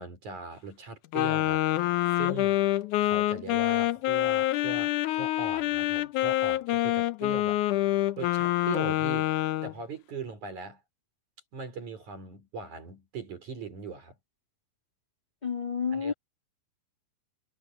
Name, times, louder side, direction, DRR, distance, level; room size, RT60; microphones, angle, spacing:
voice 1, 0.0-1.6 2.1-2.6 3.0-7.6 8.2-10.8 11.5-14.1 15.9-16.1, right 4 dB, 50° right, 6.1 m, -40 dB
Wind instrument woodwind instrument, 1.1-9.7, left 15 dB, 80° left, 1.8 m, -26 dB
voice 2, 15.4-16.1, left 6 dB, 20° left, 1.3 m, -30 dB
omnidirectional pair, 4.6 m